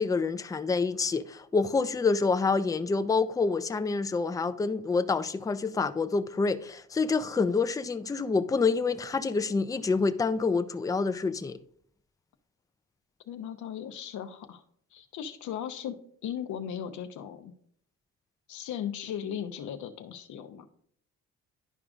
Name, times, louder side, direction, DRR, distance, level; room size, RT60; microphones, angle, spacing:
voice 1, 0.0-11.6, left 4 dB, 10° left, 0.4 m, -27 dB
voice 2, 13.3-14.6 14.9-17.5 18.5-20.7, left 9 dB, 75° left, 0.7 m, -37 dB
11.0 x 4.9 x 2.4 m
cardioid pair, 90°, 30 cm